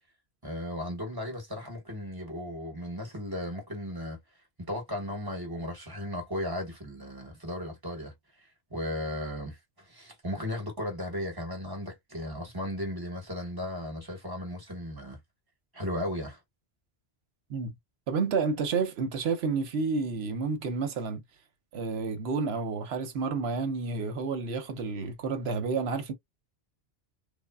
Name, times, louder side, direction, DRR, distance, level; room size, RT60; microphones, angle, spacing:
voice 1, 0.4-4.2 4.6-15.2 15.7-16.4, left 1 dB, 20° right, 1.0 m, -36 dB
voice 2, 18.1-21.2 21.7-26.1, right 4 dB, 75° right, 1.0 m, -30 dB
3.5 x 2.0 x 2.2 m
omnidirectional pair, 1.1 m